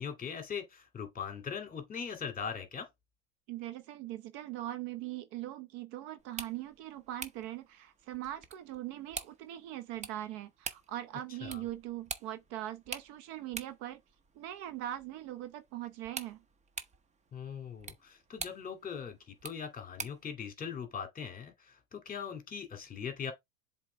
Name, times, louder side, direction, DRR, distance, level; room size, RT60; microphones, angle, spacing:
voice 1, 0.0-2.9 11.4-11.6 17.3-23.3, left 7 dB, 20° left, 2.4 m, -40 dB
voice 2, 3.5-14.0 14.4-16.4, right 13 dB, 50° right, 0.9 m, -41 dB
sound 1, 6.2-20.3, right 5 dB, 15° right, 0.8 m, -47 dB
7.4 x 3.9 x 3.4 m
hypercardioid pair, 110°, 43 cm